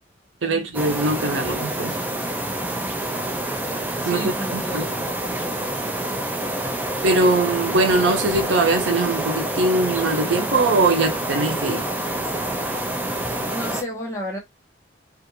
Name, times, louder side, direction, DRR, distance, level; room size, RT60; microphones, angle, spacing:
voice 1, 0.4-2.0 4.0-4.9 7.0-11.9, right 2 dB, 80° right, 0.7 m, -21 dB
sound 1, 0.7-13.8, right 1 dB, 10° right, 0.4 m, -27 dB
voice 2, 4.0-4.9 13.5-14.4, equal, 15° left, 1.0 m, -32 dB
2.5 x 2.5 x 2.8 m
head